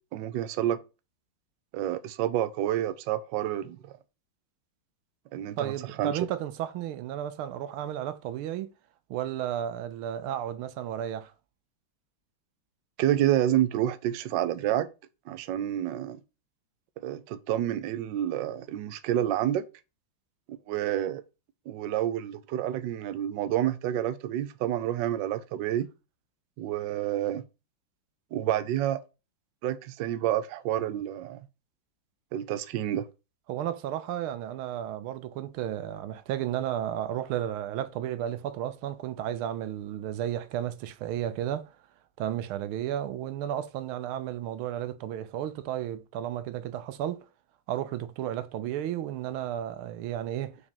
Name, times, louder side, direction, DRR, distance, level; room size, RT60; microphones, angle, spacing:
voice 1, 0.1-0.8 1.7-4.0 5.3-5.7 6.0-6.1 13.0-14.9 15.3-16.2 17.0-19.6 20.5-21.2 21.7-25.9 26.6-27.4 28.3-29.0 29.6-31.5 32.3-33.1, right 12 dB, 75° right, 1.2 m, -29 dB
voice 2, 5.6-8.7 9.1-11.3 33.5-41.7 42.2-47.2 47.7-50.6, right 11 dB, 90° right, 1.6 m, -33 dB
5.0 x 4.2 x 5.3 m
omnidirectional pair, 2.3 m